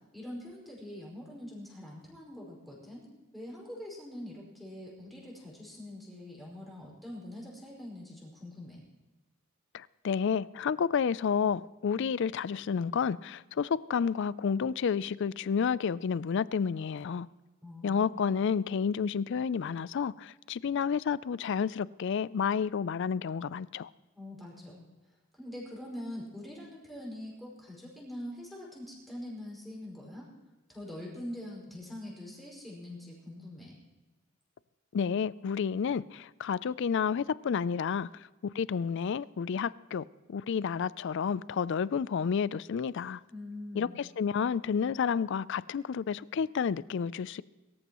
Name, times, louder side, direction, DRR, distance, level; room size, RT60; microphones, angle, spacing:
voice 1, 0.1-3.1 3.3-8.8 17.6-18.4 24.1-24.8 25.3-30.3 30.7-33.8 43.3-44.0, left 1 dB, ahead, -4 dB, 5.1 m, -44 dB
voice 2, 9.7-17.3 17.8-23.9 34.9-38.1 38.5-43.2 43.8-47.4, left 6 dB, 55° left, 19 dB, 0.3 m, -30 dB
23.0 x 14.0 x 3.0 m, 1.1 s
head